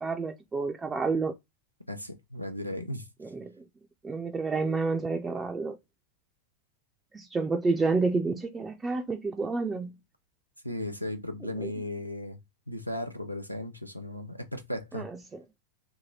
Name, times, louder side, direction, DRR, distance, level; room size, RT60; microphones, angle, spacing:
voice 1, 0.0-1.3 3.2-3.5 4.0-5.8 7.1-10.0 11.6-11.7 14.9-15.1, right 4 dB, 15° right, 0.4 m, -29 dB
voice 2, 1.9-3.1 10.6-12.4 12.7-15.1, left 1 dB, 90° right, 0.6 m, -36 dB
2.8 x 2.8 x 3.9 m
figure-of-eight pair, 90°, 0 cm